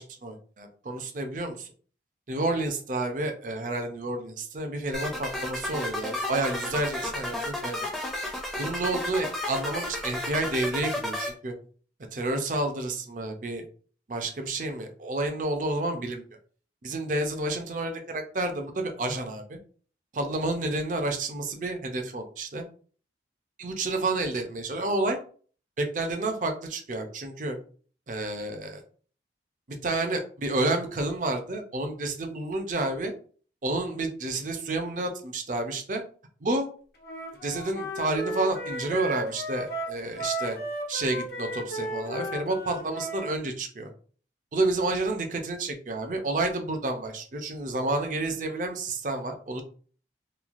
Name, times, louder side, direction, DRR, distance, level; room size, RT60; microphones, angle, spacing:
voice 1, 0.0-1.7 2.3-7.9 8.6-11.5 12.1-13.6 14.1-16.2 16.8-19.6 20.1-22.6 23.6-25.2 25.8-27.6 28.1-28.8 29.8-33.1 33.6-36.0 36.4-36.7 37.4-40.6 40.9-43.9 44.5-49.6, right 2 dB, 45° right, 5 dB, 0.5 m, -30 dB
sound 1, 4.9-11.3, left 1 dB, ahead, 0.5 m, -32 dB
Wind instrument woodwind instrument, 37.0-43.3, right 1 dB, 55° left, 0.7 m, -34 dB
3.1 x 2.4 x 2.4 m, 0.42 s
head